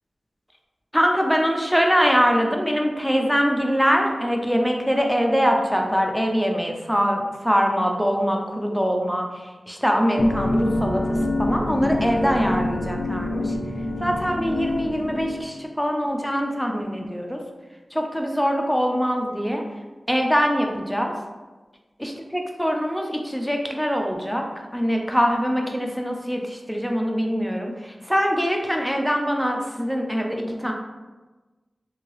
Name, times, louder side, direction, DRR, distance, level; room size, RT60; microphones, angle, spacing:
voice 1, 0.9-13.5 14.0-17.4 17.9-19.6 20.1-21.1 22.0-24.4 24.7-30.7, equal, ahead, 1 dB, 0.5 m, -23 dB
sound 1, 10.2-15.5, left 1 dB, 55° left, 0.4 m, -25 dB
2.8 x 2.7 x 3.1 m, 1.2 s
cardioid pair, 55°, 0 cm